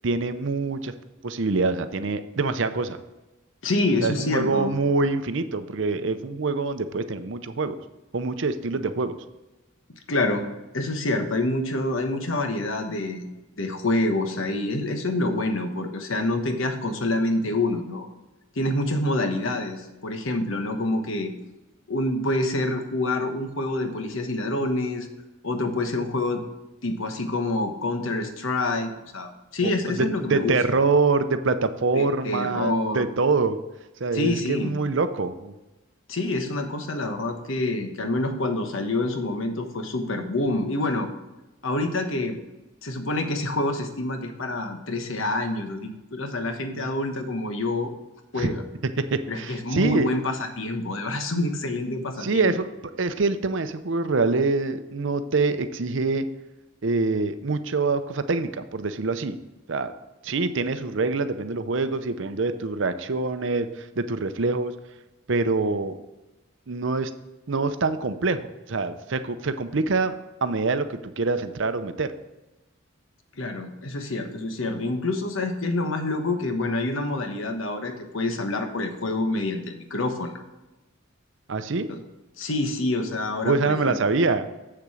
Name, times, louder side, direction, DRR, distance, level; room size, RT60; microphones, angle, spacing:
voice 1, 0.0-0.9 1.2-3.0 4.0-7.8 8.1-9.1 29.6-33.6 34.0-35.5 46.7-46.9 48.4-48.5 49.1-50.1 52.2-52.7 53.0-56.3 56.8-59.4 59.7-59.9 60.2-64.7 65.3-66.0 66.7-67.1 67.5-70.1 70.4-72.1 81.5-81.9 83.4-84.5, right 3 dB, 60° right, 10 dB, 0.6 m, -25 dB
voice 2, 3.6-4.7 10.1-10.5 10.7-13.2 13.6-18.1 18.5-21.3 21.9-25.1 25.4-26.4 26.8-30.6 31.9-33.1 34.1-34.7 36.1-41.1 41.6-42.4 42.8-47.9 48.3-48.6 49.3-52.5 73.4-80.4 81.9-82.0 82.4-84.0, left 2 dB, 65° left, 6 dB, 1.2 m, -27 dB
7.7 x 6.9 x 4.9 m, 1.0 s
head